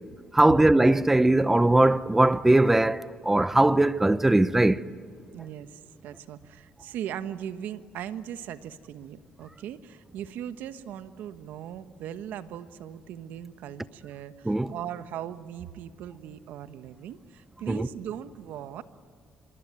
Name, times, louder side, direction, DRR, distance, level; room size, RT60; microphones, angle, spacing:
voice 1, 0.3-4.8 14.4-14.7 17.7-17.9, right 2 dB, 10° right, 0.7 m, -20 dB
voice 2, 5.3-18.8, right 10 dB, 85° right, 1.3 m, -39 dB
26.0 x 22.5 x 9.5 m
cardioid pair, 115°, 3 cm